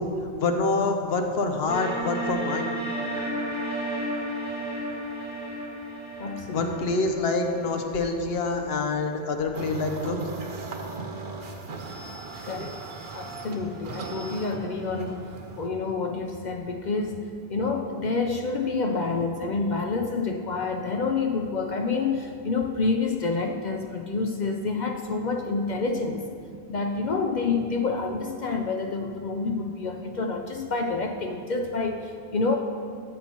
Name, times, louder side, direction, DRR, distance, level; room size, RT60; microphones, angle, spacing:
voice 1, 0.2-2.7 6.5-10.2, left 3 dB, 70° left, 5 dB, 1.0 m, -26 dB
sound 1, 1.7-8.6, right 1 dB, 5° right, 1.7 m, -33 dB
voice 2, 6.2-6.7 12.4-12.8 13.1-15.2 15.6-26.2 26.7-32.6, left 4 dB, 55° left, 3 dB, 0.6 m, -28 dB
sound 2, 9.5-15.7, right 3 dB, 70° right, 1.0 m, -38 dB
13.5 x 7.6 x 2.9 m, 2.5 s
omnidirectional pair, 1.1 m